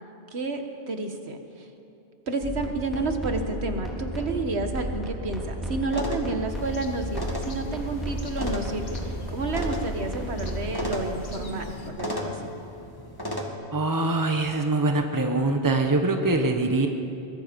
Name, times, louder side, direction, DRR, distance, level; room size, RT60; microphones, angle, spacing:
voice 1, 0.3-1.7 2.3-9.0 9.3-12.4, right 3 dB, 70° right, 5 dB, 1.8 m, -30 dB
sound 1, 2.4-10.8, equal, ahead, 3.8 m, -33 dB
sound 2, 5.9-13.5, left 1 dB, 20° left, 1.8 m, -36 dB
sound 3, 6.5-11.9, left 2 dB, 50° left, 1.5 m, -42 dB
voice 2, 13.7-16.9, right 2 dB, 20° right, 4 dB, 1.2 m, -23 dB
23.0 x 21.5 x 5.3 m, 2.8 s
omnidirectional pair, 1.1 m